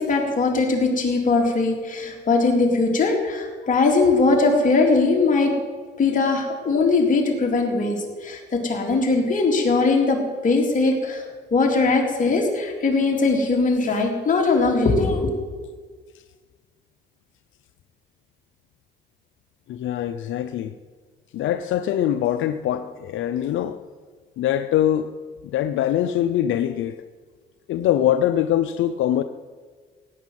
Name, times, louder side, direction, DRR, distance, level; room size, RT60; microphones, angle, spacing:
voice 1, 0.0-5.5 6.0-11.2 11.5-15.3, left 3 dB, 40° left, 3.7 m, -20 dB
voice 2, 19.7-20.7 21.3-23.8 24.4-25.1 25.4-27.0 27.7-29.2, left 11 dB, 80° left, 0.6 m, -23 dB
17.0 x 9.4 x 7.6 m
cardioid pair, 90°, 20 cm